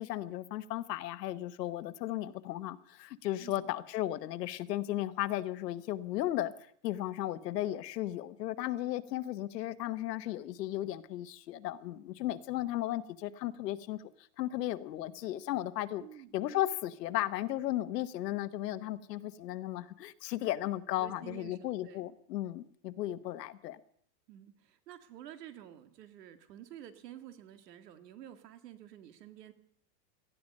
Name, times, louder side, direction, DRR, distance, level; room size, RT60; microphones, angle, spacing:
voice 1, 0.0-6.5 6.8-14.0 14.4-16.0 16.3-23.8, left 14 dB, 85° left, 13 dB, 1.3 m, -35 dB
voice 2, 16.0-16.4 21.0-22.1 24.3-29.5, right 11 dB, 80° right, 8 dB, 2.2 m, -50 dB
18.5 x 13.5 x 5.4 m, 0.63 s
supercardioid pair, 175°, 48 cm